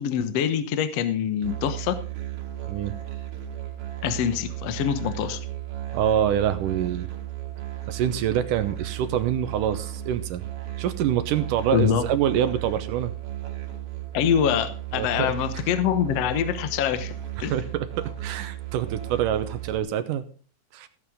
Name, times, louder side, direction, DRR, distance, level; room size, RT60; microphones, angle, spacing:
voice 1, 0.0-2.0 4.0-5.4 11.7-12.0 14.1-17.6, left 9 dB, 65° left, 11 dB, 1.7 m, -25 dB
Musical instrument, 1.4-19.8, right 13 dB, 50° right, 2.6 m, -35 dB
voice 2, 5.9-7.1 7.9-10.4 10.8-13.1 14.9-15.3 17.4-20.2 20.7-20.9, right 10 dB, 75° right, 11 dB, 2.4 m, -26 dB
17.0 x 8.1 x 3.7 m, 0.38 s
omnidirectional pair, 3.9 m